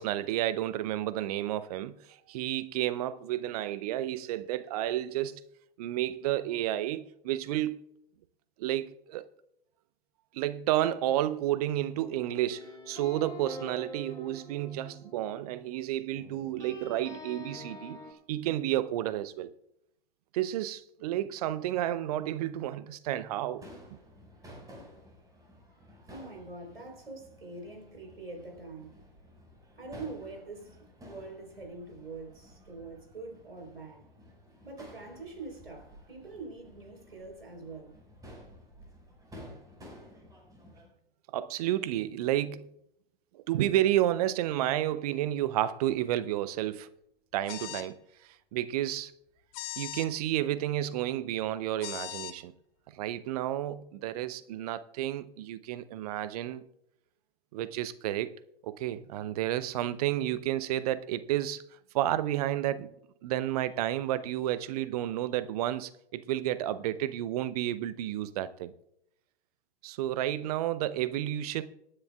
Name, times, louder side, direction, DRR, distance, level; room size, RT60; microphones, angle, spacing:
voice 1, 0.0-5.4 5.8-7.8 8.6-9.3 10.3-18.0 18.3-19.5 20.3-23.6 41.3-42.7 43.3-46.9 47.3-48.0 48.2-49.1 49.8-52.5 52.9-56.6 57.5-58.3 58.6-61.6 61.9-63.0 63.2-68.7 69.8-71.6, right 13 dB, 40° right, 0.7 m, -31 dB
Floyd Filtertron CG stuff, 12.0-15.7 16.1-18.1, left 1 dB, 10° left, 2.8 m, -46 dB
Crowd / Fireworks, 23.5-40.8, equal, 10° right, 5.3 m, -53 dB
voice 2, 26.1-29.0 29.8-34.0 34.6-38.0, right 3 dB, 75° right, 4.0 m, -44 dB
sound 1, 47.5-47.9 49.5-50.1 51.8-52.3, left 14 dB, 30° left, 1.0 m, -39 dB
25.5 x 9.8 x 2.3 m
figure-of-eight pair, 100°, 29 cm